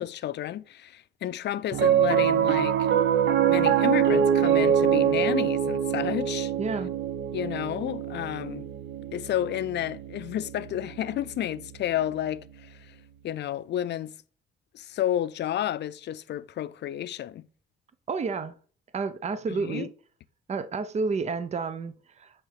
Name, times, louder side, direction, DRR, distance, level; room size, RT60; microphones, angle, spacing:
voice 1, 0.0-2.8 3.5-6.5 7.3-8.7 9.1-12.9 13.2-14.1 14.7-17.4 19.5-19.9, left 12 dB, 60° left, 0.4 m, -31 dB
Piano, 1.7-12.2, right 9 dB, 65° right, 0.8 m, -25 dB
voice 2, 6.6-6.9 18.1-18.5 18.9-19.9 20.5-22.4, right 4 dB, 35° right, 0.6 m, -30 dB
5.6 x 3.6 x 5.7 m
cardioid pair, 90°, 20 cm